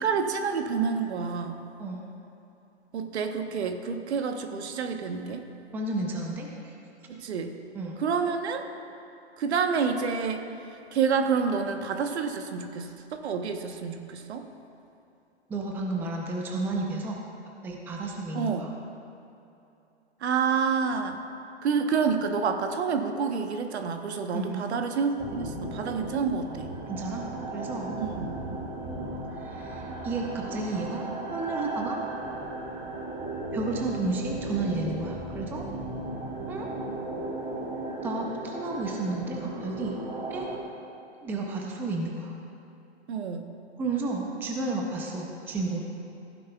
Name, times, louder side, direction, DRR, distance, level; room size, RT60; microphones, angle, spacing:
voice 1, 0.0-1.6 2.9-5.4 7.1-7.6 8.0-8.7 9.4-10.4 10.9-14.5 18.3-18.7 20.2-21.2 21.6-26.7 28.0-28.4 43.1-43.5, right 5 dB, 75° right, 6 dB, 1.0 m, -28 dB
voice 2, 5.7-6.7 7.7-8.0 15.5-17.2 17.6-18.7 24.3-24.7 26.9-27.9 29.4-32.0 33.5-35.7 36.5-36.7 38.0-40.0 40.3-40.5 41.2-42.3 43.8-45.8, right 3 dB, 5° right, 0 dB, 0.5 m, -32 dB
sound 1, 25.2-40.6, right 2 dB, 25° right, 1.6 m, -36 dB
15.0 x 9.4 x 2.3 m, 2.8 s
hypercardioid pair, 140°, 33 cm